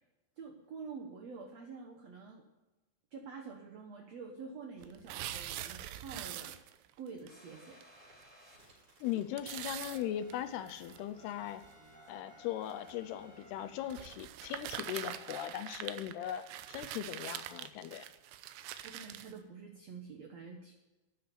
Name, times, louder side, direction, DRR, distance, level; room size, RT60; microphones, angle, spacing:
voice 1, 0.4-2.4 3.1-7.8 18.6-20.7, right 5 dB, 65° right, 3 dB, 1.6 m, -48 dB
sound 1, 4.8-6.9 7.3-7.4 7.8-7.9 8.2-8.3 9.4-11.0 11.6-11.7 12.7-12.9 13.9-19.3, right 12 dB, 90° right, 2.8 m, -44 dB
sound 2, 7.3-14.0, left 1 dB, 35° right, 4.9 m, -58 dB
voice 2, 9.0-11.6 12.1-18.1, left 11 dB, 80° left, 11 dB, 2.6 m, -39 dB
12.0 x 9.8 x 6.8 m, 1.1 s
omnidirectional pair, 4.7 m